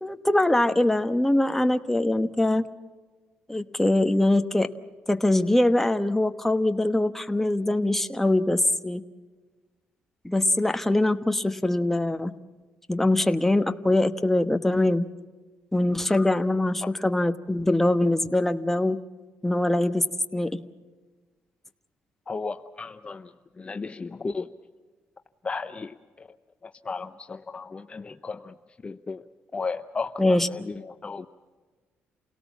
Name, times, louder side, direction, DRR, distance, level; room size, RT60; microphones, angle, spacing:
voice 1, 0.0-2.7 3.5-4.7 5.1-9.0 10.2-12.3 12.9-15.0 15.7-19.0 19.4-20.1 20.3-20.6 30.2-30.5, left 1 dB, 5° left, 8 dB, 1.1 m, -23 dB
voice 2, 22.3-24.5 25.4-26.3 26.6-28.5 28.8-29.2 29.5-31.3, left 4 dB, 25° left, 8 dB, 0.7 m, -35 dB
29.0 x 18.0 x 7.3 m, 1.3 s
cardioid pair, 100°, 4 cm